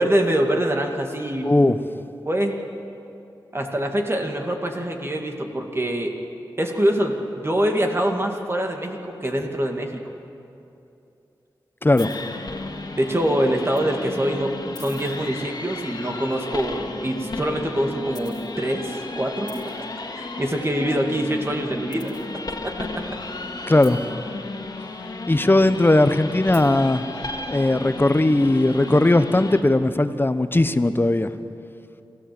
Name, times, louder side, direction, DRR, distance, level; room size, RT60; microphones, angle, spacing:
voice 1, 0.0-1.5 2.3-2.6 3.5-6.1 6.6-10.0 13.0-19.5 20.2-22.1, right 1 dB, 30° right, 2 dB, 2.3 m, -24 dB
voice 2, 1.4-1.8 11.8-12.1 23.7-24.0 25.3-27.0 27.5-31.3, left 2 dB, 25° left, 11 dB, 1.0 m, -18 dB
sound 1, 12.0-29.6, left 2 dB, 55° left, 2.1 m, -34 dB
27.0 x 14.0 x 7.9 m, 2.7 s
cardioid pair, 50°, 8 cm